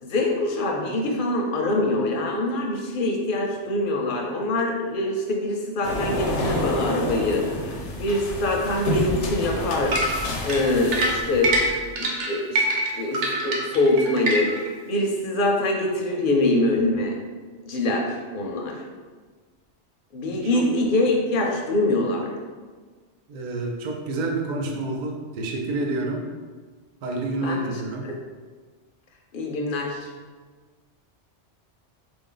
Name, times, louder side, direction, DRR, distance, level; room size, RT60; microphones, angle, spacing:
voice 1, 0.0-7.7 8.0-9.9 10.4-11.5 11.9-12.6 13.0-14.5 14.9-17.1 17.6-18.7 20.1-22.3 27.4-27.6 28.0-28.1 29.3-30.0, left 2 dB, 55° left, 1 dB, 0.7 m, -24 dB
sound 1, 5.8-11.7, left 1 dB, 80° left, 1.0 m, -29 dB
sound 2, 9.9-14.7, right 1 dB, 80° right, 1.0 m, -24 dB
voice 2, 23.3-26.2 27.0-28.1, right 2 dB, 55° right, 0 dB, 0.5 m, -28 dB
3.7 x 2.6 x 3.8 m, 1.4 s
omnidirectional pair, 1.2 m